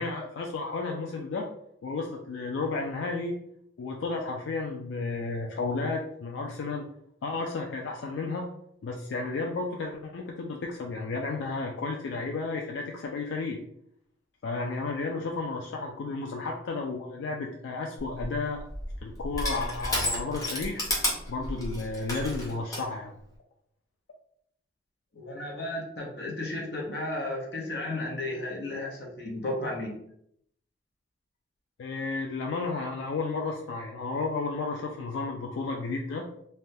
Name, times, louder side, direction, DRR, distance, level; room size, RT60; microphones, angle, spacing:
voice 1, 0.0-1.5 1.8-3.4 3.8-6.9 7.2-8.5 8.8-13.6 14.4-18.6 19.0-20.9 21.3-23.2 31.8-36.3, left 3 dB, 90° left, 1 dB, 0.3 m, -32 dB
Crushing, 18.0-22.9, left 1 dB, 20° left, 0.6 m, -32 dB
voice 2, 25.1-29.9, left 1 dB, 65° left, -1 dB, 0.8 m, -33 dB
3.2 x 2.2 x 2.6 m, 0.72 s
head